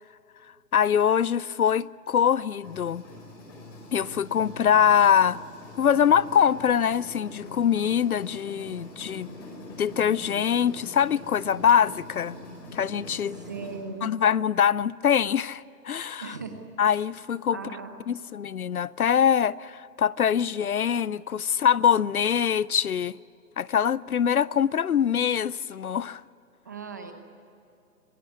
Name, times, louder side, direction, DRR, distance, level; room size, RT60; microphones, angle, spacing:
voice 1, 0.7-3.0 3.9-5.4 5.8-9.3 9.8-12.4 12.7-13.4 14.0-16.4 16.8-17.6 18.1-23.2 23.6-26.2, left 8 dB, 65° left, 0.6 m, -23 dB
sound 1, 2.6-13.8, left 1 dB, 25° left, 5.3 m, -43 dB
voice 2, 13.4-14.1 16.2-16.6 17.5-17.9 26.6-27.1, right 5 dB, 10° right, 0.8 m, -37 dB
26.0 x 17.0 x 9.6 m
hypercardioid pair, 160°, 48 cm